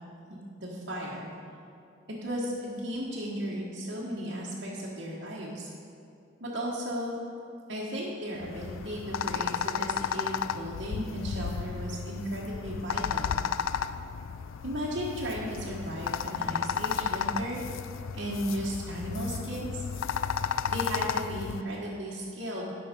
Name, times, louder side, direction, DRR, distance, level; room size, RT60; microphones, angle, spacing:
voice 1, 0.6-1.3 2.2-5.7 6.4-7.1 7.7-13.4 14.6-17.6 18.1-19.8 20.7-22.7, equal, 60° right, -7 dB, 1.4 m, -35 dB
sound 1, 8.4-21.6, left 7 dB, 80° left, 0.4 m, -33 dB
12.5 x 6.0 x 5.2 m, 2.7 s
head